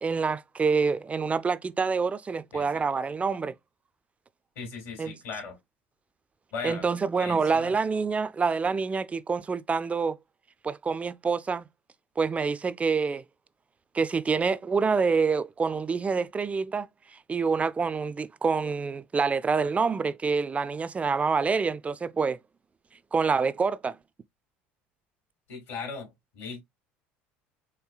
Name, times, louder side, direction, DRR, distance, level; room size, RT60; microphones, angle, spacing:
voice 1, 0.0-3.5 5.0-5.2 6.6-10.2 10.6-11.7 12.2-13.2 13.9-22.4 23.1-24.0, right 5 dB, 25° right, 0.4 m, -27 dB
voice 2, 2.5-2.8 4.6-5.6 6.5-6.9 7.2-7.7 25.5-26.6, left 5 dB, 75° left, 2.5 m, -38 dB
4.5 x 3.2 x 2.3 m
hypercardioid pair, 80°, 6 cm